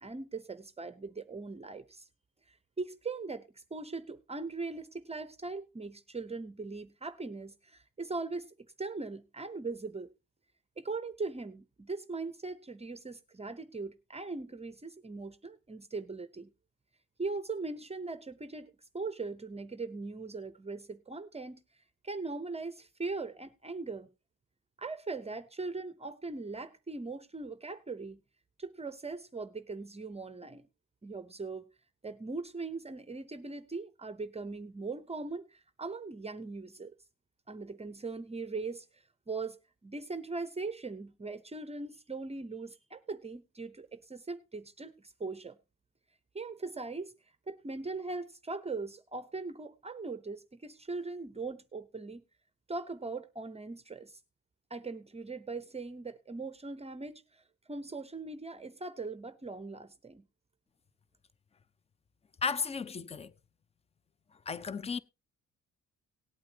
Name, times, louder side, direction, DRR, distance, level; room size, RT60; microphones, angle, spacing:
voice 1, 0.0-2.0 2.5-8.5 8.8-10.1 10.8-16.5 17.2-21.6 22.0-24.1 24.8-28.2 28.6-30.6 31.0-31.6 32.0-36.9 37.5-38.9 39.3-45.6 46.3-47.1 47.5-52.2 52.7-54.2 54.7-57.4 57.7-60.2, right 3 dB, 20° right, 0.7 m, -40 dB
voice 2, 62.4-63.3 64.5-65.0, left 5 dB, 20° left, 0.5 m, -34 dB
18.0 x 8.5 x 2.8 m
cardioid pair, 90°, 30 cm